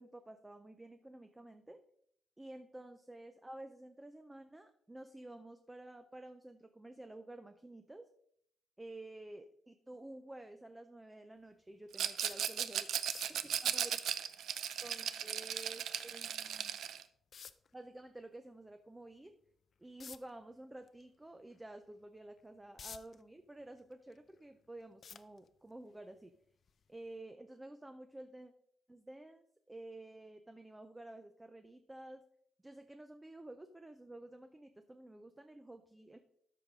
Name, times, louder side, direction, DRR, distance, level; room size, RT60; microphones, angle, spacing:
voice 1, 0.0-1.8 2.4-8.1 8.8-12.9 13.3-14.0 14.8-16.8 17.7-19.4 19.8-26.3 26.9-28.5 28.9-32.2 32.6-36.2, right 1 dB, 10° right, 8 dB, 0.5 m, -51 dB
Rattle, 11.9-17.0, right 9 dB, 80° right, 0.5 m, -37 dB
sound 1, 12.2-12.5 13.0-13.4 16.2-16.3 17.3-17.7 20.0-20.3 20.8-21.0 21.5-21.6 22.4-23.2 23.7-24.4 25.0-25.7 26.6-26.8 27.2-27.3, left 6 dB, 45° left, 0.4 m, -50 dB
13.0 x 5.3 x 3.6 m, 0.67 s
cardioid pair, 145°, 0 cm